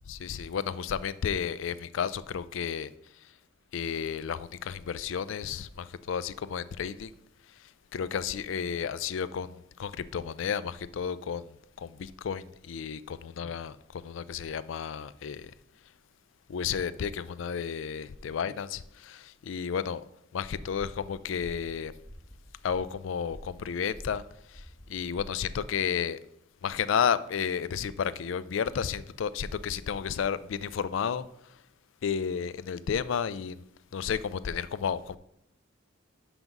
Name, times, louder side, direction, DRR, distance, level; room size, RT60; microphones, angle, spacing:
voice 1, 0.1-2.9 3.7-7.1 7.9-15.5 16.5-20.0 20.3-21.9 22.6-24.2 24.5-26.2 26.6-31.2 32.0-33.6 33.9-35.2, left 7 dB, 70° left, 0.4 m, -32 dB
sound 1, 21.9-25.8, equal, 20° left, 1.0 m, -49 dB
5.9 x 5.2 x 6.0 m
head